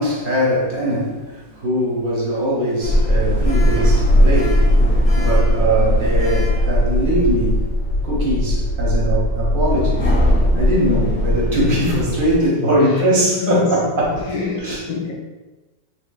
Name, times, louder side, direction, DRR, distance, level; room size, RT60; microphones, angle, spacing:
voice 1, 0.0-7.7 8.0-10.1 10.5-14.8, right 1 dB, 45° right, -4 dB, 0.7 m, -21 dB
Sliding door, 2.8-12.4, equal, 40° left, 0.9 m, -18 dB
voice 2, 13.4-13.7 14.3-15.1, left 5 dB, 65° left, -2 dB, 0.9 m, -25 dB
3.6 x 3.1 x 2.3 m, 1.2 s
omnidirectional pair, 1.8 m